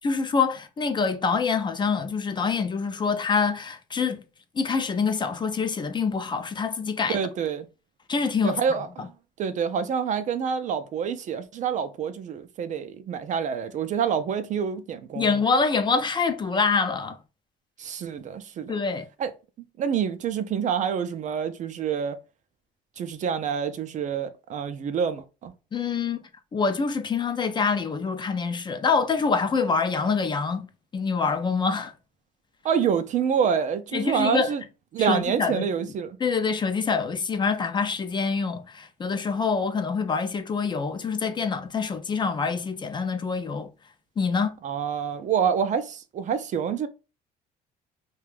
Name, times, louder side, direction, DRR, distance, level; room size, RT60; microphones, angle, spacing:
voice 1, 0.0-4.2 4.5-7.2 8.1-8.6 9.0-9.1 15.1-17.2 18.7-19.1 25.7-26.2 26.5-30.7 30.9-31.9 33.9-34.5 35.0-35.9 36.2-43.7 44.2-44.5, left 5 dB, 25° left, 0.4 m, -25 dB
voice 2, 7.1-7.7 8.4-9.1 9.4-15.3 17.8-18.8 19.2-19.3 19.8-22.2 23.0-25.5 32.6-34.6 34.9-36.2 44.6-46.9, right 7 dB, 45° right, 0.4 m, -27 dB
2.4 x 2.2 x 3.3 m
cardioid pair, 110°, 17 cm